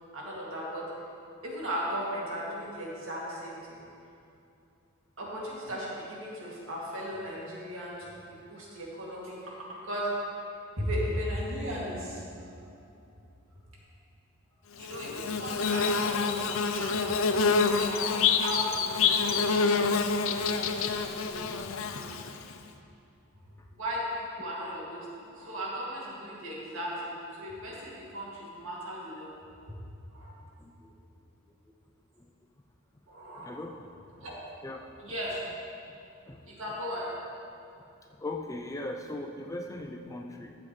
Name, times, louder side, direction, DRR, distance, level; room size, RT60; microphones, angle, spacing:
voice 1, 0.1-0.9 1.4-3.8 5.2-10.1 10.8-12.2 12.7-12.8 14.7-17.3 17.7-20.4 20.8-21.0 21.2-21.5 21.9-22.2 23.7-29.3 30.1-30.3 33.1-33.5 34.2-34.4 35.0-35.4 36.4-37.1, equal, 65° right, -5 dB, 2.4 m, -37 dB
Bird / Buzz, 14.8-22.5, left 5 dB, 65° left, 0.5 m, -27 dB
voice 2, 30.6-31.0 31.7-31.8 32.2-32.3 33.4-33.7 34.6-34.8 36.3-36.4 38.2-40.5, left 2 dB, 15° left, 2 dB, 0.4 m, -39 dB
13.5 x 7.7 x 3.2 m, 2.6 s
head